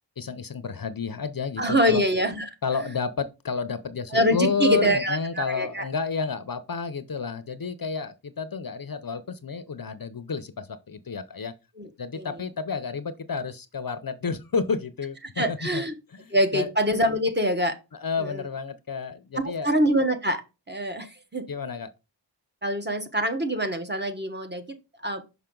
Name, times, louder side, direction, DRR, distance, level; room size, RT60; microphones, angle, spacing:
voice 1, 0.2-2.0 2.6-11.5 12.0-15.8 16.1-16.7 18.0-19.7 21.5-21.9, left 5 dB, 50° left, 0.6 m, -30 dB
voice 2, 1.6-2.4 4.1-5.9 11.8-11.9 12.1-12.3 15.4-15.9 16.3-17.8 18.2-18.4 19.4-20.4 20.7-21.4 22.6-24.7 25.0-25.2, equal, 25° right, 1.2 m, -24 dB
5.7 x 5.7 x 3.7 m
wide cardioid pair, 75°, 45 cm